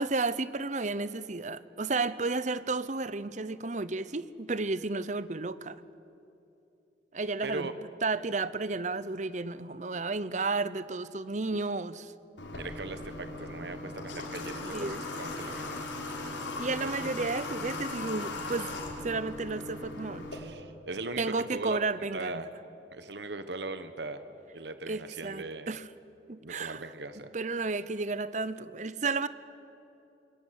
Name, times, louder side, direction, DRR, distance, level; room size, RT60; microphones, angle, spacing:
voice 1, 0.0-5.8 7.1-7.7 8.0-12.1 14.7-15.0 16.6-18.7 19.0-20.2 21.2-22.5 24.9-25.8 26.3-26.8 27.3-29.3, right 3 dB, 40° right, 0.8 m, -32 dB
Water / Water tap faucet, 12.4-20.4, left 2 dB, 85° left, 4.4 m, -38 dB
voice 2, 12.5-15.9 16.8-17.1 20.3-21.8 22.1-22.5 22.9-24.2 24.5-25.7 26.4-27.3, right 3 dB, 70° right, 1.3 m, -39 dB
26.5 x 22.0 x 9.5 m
head